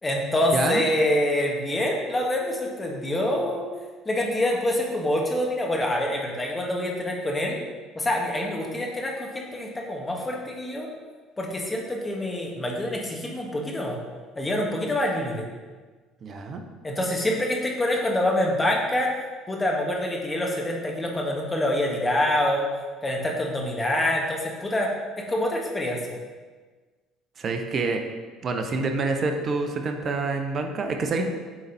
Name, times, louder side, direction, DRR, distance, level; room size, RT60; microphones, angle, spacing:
voice 1, 0.0-3.6 4.1-7.6 8.0-10.9 11.4-14.0 14.4-15.4 16.8-19.1 19.5-22.7 23.0-24.9 25.3-26.0 31.2-31.3, left 1 dB, 20° left, -1 dB, 1.8 m, -26 dB
voice 2, 16.2-16.6 27.4-28.0 28.4-31.2, right 3 dB, 45° right, 5 dB, 0.9 m, -27 dB
8.9 x 4.0 x 4.2 m, 1.4 s
hypercardioid pair, 60°, 0 cm